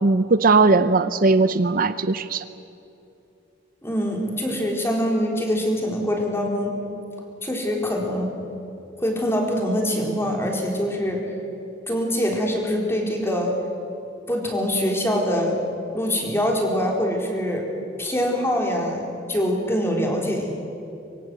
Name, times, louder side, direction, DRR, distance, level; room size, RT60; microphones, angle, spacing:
voice 1, 0.0-2.4, right 3 dB, 50° right, 12 dB, 0.6 m, -18 dB
voice 2, 3.8-6.7 7.4-8.4 9.0-11.2 11.9-13.6 14.3-15.6 15.9-17.7 18.0-20.5, equal, 15° left, 0 dB, 4.3 m, -24 dB
25.0 x 23.5 x 7.9 m, 2.8 s
head